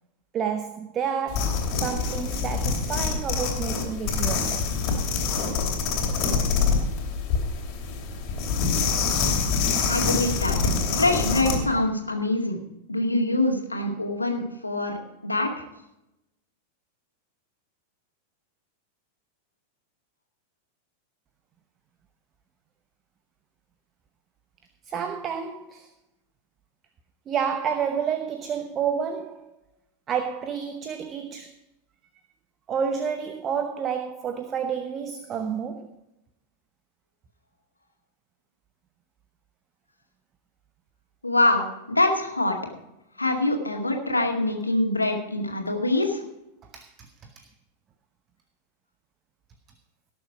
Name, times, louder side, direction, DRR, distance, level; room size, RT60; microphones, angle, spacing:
voice 1, 0.3-4.8 24.8-25.9 27.3-29.5 30.1-31.5 32.7-36.0 46.6-47.5, right 7 dB, 30° right, 0.9 m, -30 dB
sound 1, 1.3-11.6, left 5 dB, 35° left, 3.0 m, -25 dB
voice 2, 9.9-10.6 10.9-12.6 12.9-15.0 15.2-15.5 41.2-42.6 43.2-46.2, left 2 dB, 80° left, 2.1 m, -24 dB
17.5 x 6.9 x 4.9 m
figure-of-eight pair, 90°, 0 cm